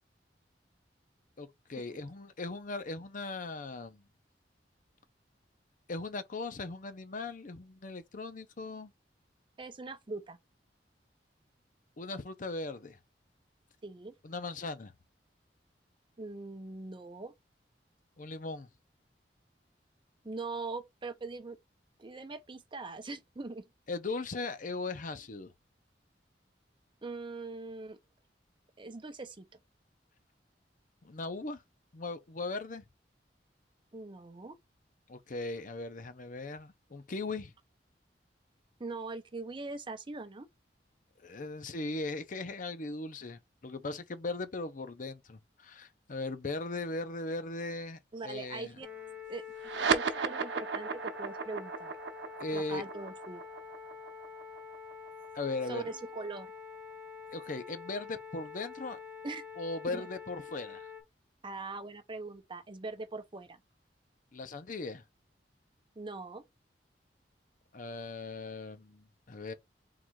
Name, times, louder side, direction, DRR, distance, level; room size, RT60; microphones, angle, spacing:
voice 1, 1.4-4.0 5.9-8.9 12.0-13.0 14.2-14.9 18.2-18.7 23.9-25.5 31.0-31.6 31.9-32.8 35.1-37.5 41.2-48.8 52.4-52.8 55.3-55.9 57.3-59.0 59.6-60.9 64.3-65.0 67.7-69.5, left 3 dB, 50° left, 0.7 m, -38 dB
voice 2, 9.6-10.4 13.8-14.1 16.2-17.3 20.2-21.6 22.0-23.7 27.0-28.0 28.8-29.5 33.9-34.6 38.8-40.5 48.1-48.9 49.3-49.4 49.9-51.9 52.5-53.4 55.7-56.5 59.2-59.4 59.9-60.1 61.4-63.6 66.0-66.4, right 3 dB, 30° right, 0.7 m, -41 dB
sound 1, 48.8-61.0, left 5 dB, 10° right, 1.2 m, -47 dB
sound 2, 49.6-56.4, right 5 dB, 85° right, 0.7 m, -35 dB
3.9 x 2.5 x 4.6 m
head